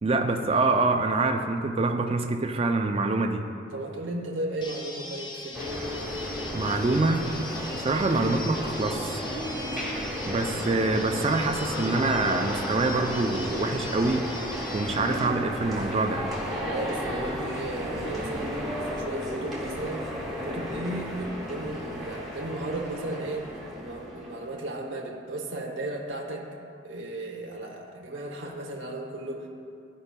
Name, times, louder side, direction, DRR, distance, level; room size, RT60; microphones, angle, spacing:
voice 1, 0.0-3.5 6.5-9.2 9.9-14.3 14.7-16.2, right 3 dB, 30° right, 5 dB, 0.4 m, -26 dB
voice 2, 3.7-5.6 16.6-20.1 20.3-23.5 23.8-26.5 26.8-29.5, right 1 dB, 75° right, -1 dB, 0.9 m, -35 dB
sound 1, 4.6-15.3, left 2 dB, 25° left, 0.5 m, -40 dB
sound 2, 5.5-24.6, equal, ahead, 1.2 m, -33 dB
12.5 x 5.3 x 2.2 m, 2.4 s
head